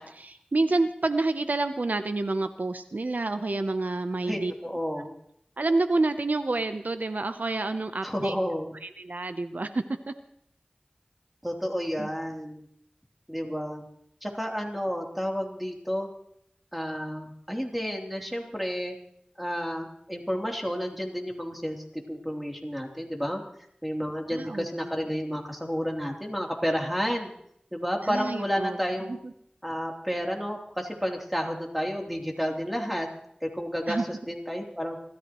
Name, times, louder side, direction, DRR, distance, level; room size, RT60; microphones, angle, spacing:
voice 1, 0.0-4.5 5.6-8.4 8.8-10.1 12.0-12.1 24.3-24.7 28.0-28.8 29.1-29.3 33.9-34.0, right 2 dB, 85° right, 9 dB, 0.8 m, -28 dB
voice 2, 4.2-5.1 8.0-8.7 11.4-12.7 13.3-13.8 14.2-16.1 16.7-18.9 19.4-23.4 23.8-27.3 27.7-29.2 29.6-33.1 33.4-35.0, equal, 5° right, 0 dB, 3.3 m, -31 dB
29.0 x 14.0 x 3.1 m, 0.69 s
wide cardioid pair, 45°, 3 cm